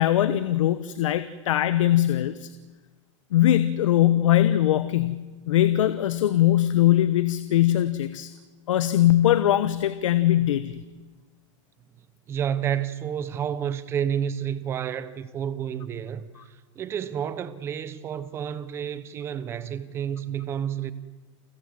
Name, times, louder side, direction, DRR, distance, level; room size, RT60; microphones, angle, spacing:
voice 1, 0.0-2.5 3.3-5.2 5.5-8.3 8.7-10.8, left 13 dB, 80° left, 1.1 m, -21 dB
voice 2, 12.3-20.9, right 9 dB, 15° right, 0.9 m, -30 dB
29.0 x 15.5 x 7.8 m
supercardioid pair, 170°, 17 cm